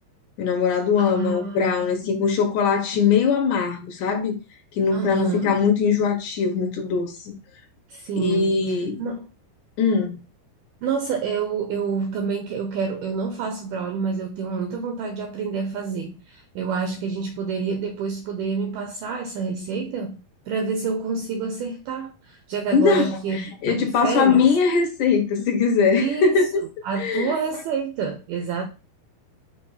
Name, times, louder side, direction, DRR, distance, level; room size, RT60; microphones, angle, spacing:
voice 1, 0.4-4.4 4.7-7.3 8.1-9.0 9.8-10.2 22.7-26.6 27.0-27.3, left 5 dB, 65° left, 2.3 m, -21 dB
voice 2, 1.0-2.0 4.9-5.6 7.9-9.3 10.8-20.2 20.5-24.5 26.0-26.4 26.8-28.7, right 5 dB, 80° right, 1.9 m, -28 dB
6.2 x 2.8 x 5.6 m
omnidirectional pair, 4.5 m